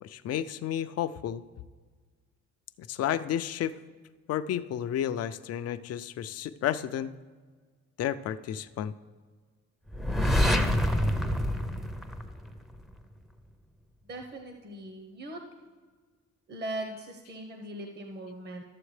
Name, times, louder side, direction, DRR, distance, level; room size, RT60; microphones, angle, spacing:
voice 1, 0.0-1.4 2.8-3.7 4.3-7.1 8.0-8.9, left 10 dB, 55° left, 12 dB, 0.5 m, -31 dB
sound 1, 9.9-12.8, equal, ahead, 0.6 m, -26 dB
voice 2, 14.1-15.4 16.5-18.6, right 1 dB, 35° right, 3 dB, 0.9 m, -39 dB
12.5 x 7.1 x 3.2 m, 1.5 s
cardioid pair, 90°, 30 cm